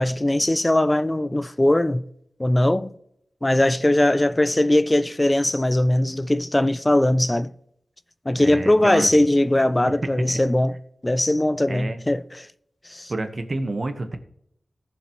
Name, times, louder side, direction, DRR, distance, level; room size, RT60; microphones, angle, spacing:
voice 1, 0.0-2.0 2.4-2.9 3.4-7.5 8.3-10.7 11.0-12.5 12.9-13.1, left 1 dB, 20° left, 0.4 m, -20 dB
voice 2, 8.4-9.1 9.9-10.4 11.7-12.0 13.1-14.2, right 2 dB, 50° right, 1.3 m, -29 dB
19.0 x 7.1 x 3.1 m
wide cardioid pair, 90°, 0 cm